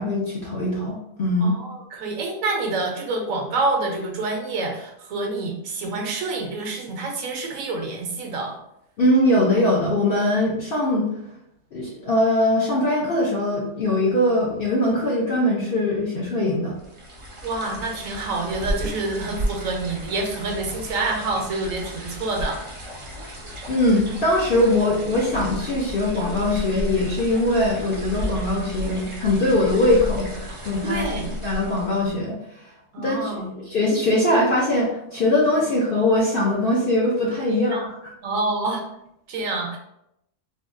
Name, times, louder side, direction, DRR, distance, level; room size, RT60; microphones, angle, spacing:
voice 1, 0.0-1.6 9.0-11.1 11.7-16.8 23.7-32.4 33.0-37.9, left 1 dB, 60° left, -4 dB, 0.6 m, -21 dB
voice 2, 1.4-8.6 17.4-22.6 30.8-31.3 32.9-33.5 37.5-37.9 38.2-38.8 39.3-39.8, right 3 dB, 75° right, 2 dB, 1.0 m, -27 dB
sound 1, 16.8-32.2, equal, 45° right, 0.4 m, -33 dB
3.4 x 2.2 x 2.5 m, 0.80 s
omnidirectional pair, 1.4 m